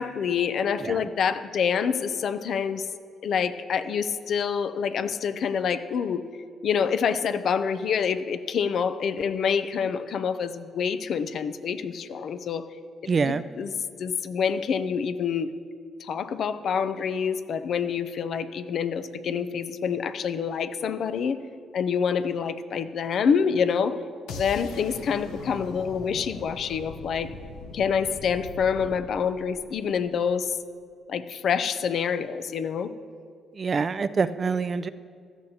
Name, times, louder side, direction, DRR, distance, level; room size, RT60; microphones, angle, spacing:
voice 1, 0.0-2.9 3.2-6.2 6.6-12.7 13.2-13.7 14.0-15.5 16.0-21.4 21.7-24.0 24.3-27.3 27.7-30.6 31.1-32.9, left 6 dB, 65° left, 11 dB, 0.5 m, -27 dB
voice 2, 13.1-13.4 33.6-34.9, right 5 dB, 40° right, 14 dB, 0.4 m, -25 dB
sound 1, 24.3-30.3, left 3 dB, 90° left, 0.8 m, -41 dB
16.0 x 12.5 x 2.8 m, 2.2 s
cardioid pair, 90°, 0 cm